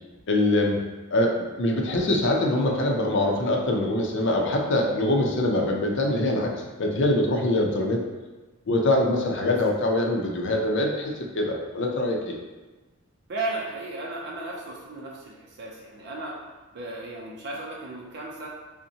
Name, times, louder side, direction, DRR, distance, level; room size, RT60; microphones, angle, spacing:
voice 1, 0.3-0.8 1.1-6.5 6.8-8.0 8.7-12.4, left 1 dB, 60° left, 1 dB, 0.6 m, -24 dB
voice 2, 13.3-16.3 16.7-18.5, right 2 dB, 55° right, -3 dB, 0.5 m, -35 dB
5.4 x 2.1 x 2.7 m, 1.2 s
head